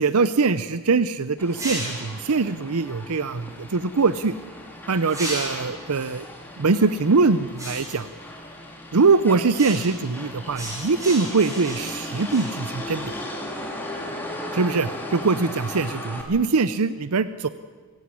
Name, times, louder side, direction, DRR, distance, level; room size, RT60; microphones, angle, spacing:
voice 1, 0.0-4.3 4.9-6.2 6.6-8.1 8.9-13.1 14.5-17.5, right 4 dB, 80° right, 14 dB, 0.7 m, -22 dB
Motor vehicle (road), 1.4-16.2, left 1 dB, 10° left, 3.4 m, -37 dB
sound 1, 1.5-2.2 5.1-5.9 7.6-8.1 9.5-10.1 10.5-13.3, right 1 dB, 15° right, 7.6 m, -34 dB
25.0 x 16.0 x 9.8 m, 1.5 s
head